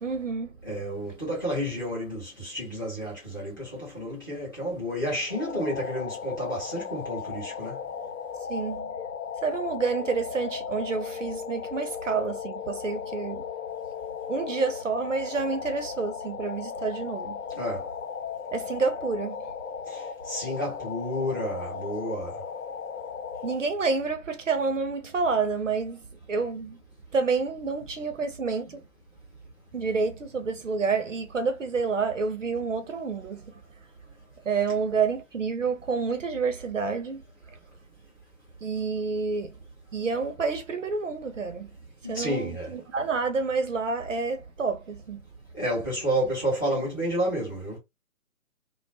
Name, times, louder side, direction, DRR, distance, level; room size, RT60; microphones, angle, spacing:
voice 1, 0.0-0.6 8.5-8.9 9.4-13.4 14.3-17.4 18.5-19.4 23.4-26.8 27.1-28.8 29.7-33.5 34.4-37.2 37.5-37.6 38.6-39.6 39.9-41.7 42.0-45.2, right 4 dB, 55° right, 0.6 m, -29 dB
voice 2, 0.6-7.8 17.6-17.9 19.9-22.4 42.0-42.7 45.5-47.8, equal, 15° left, 0.7 m, -30 dB
sound 1, 5.3-23.6, left 6 dB, 75° left, 0.6 m, -36 dB
2.3 x 2.0 x 2.7 m
figure-of-eight pair, 145°, 44 cm